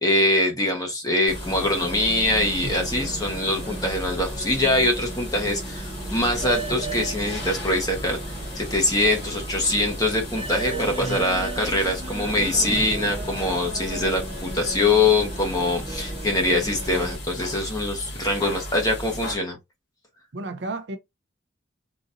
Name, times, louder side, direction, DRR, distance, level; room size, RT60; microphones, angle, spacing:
voice 1, 0.0-8.2 8.5-19.6, left 2 dB, 20° left, 1.0 m, -23 dB
sound 1, 1.3-19.4, equal, 60° left, 1.7 m, -36 dB
sound 2, 1.3-17.2, right 2 dB, 30° right, 1.0 m, -35 dB
voice 2, 10.7-11.3 20.3-21.0, right 3 dB, 60° right, 0.5 m, -32 dB
3.9 x 2.6 x 2.5 m
head